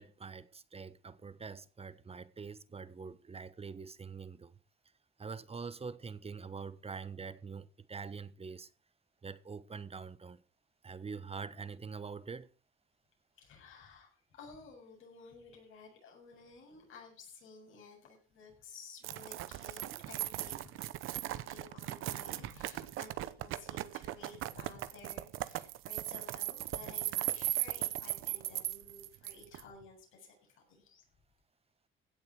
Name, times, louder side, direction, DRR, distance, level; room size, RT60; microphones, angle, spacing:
voice 1, 0.0-4.5 5.2-8.7 9.2-10.4 10.8-12.5, right 5 dB, 30° right, 1.2 m, -45 dB
voice 2, 13.4-20.9 21.2-31.0, left 4 dB, 80° left, 7.7 m, -54 dB
sound 1, 19.0-29.6, right 15 dB, 85° right, 0.9 m, -38 dB
16.5 x 7.5 x 6.3 m
cardioid pair, 80°, 20 cm